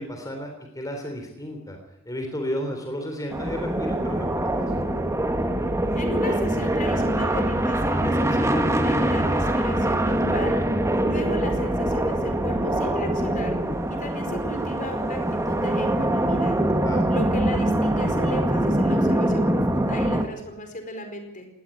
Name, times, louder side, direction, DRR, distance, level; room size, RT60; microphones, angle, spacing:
voice 1, 0.0-1.8 2.0-4.7 16.8-17.0, equal, 15° left, 3 dB, 3.6 m, -33 dB
sound 1, 3.3-20.3, right 1 dB, 15° right, 1.9 m, -23 dB
voice 2, 5.9-10.6 11.0-13.5 13.9-16.6 17.1-21.5, left 1 dB, 40° left, 6 dB, 4.8 m, -35 dB
20.0 x 17.5 x 9.9 m, 0.87 s
head